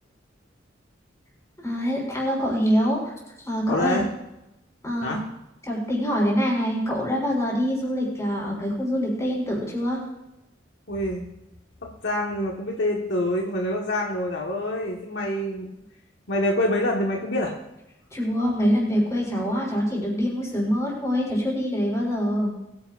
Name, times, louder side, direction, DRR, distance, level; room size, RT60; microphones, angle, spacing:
voice 1, 1.6-3.1 3.4-4.0 4.8-5.2 5.6-10.0 18.1-22.5, equal, 15° left, -4 dB, 5.7 m, -25 dB
voice 2, 3.7-4.1 5.0-5.2 10.9-11.2 11.8-15.8 16.3-17.5, left 1 dB, 65° left, -1 dB, 1.6 m, -26 dB
22.0 x 10.5 x 2.6 m, 0.91 s
head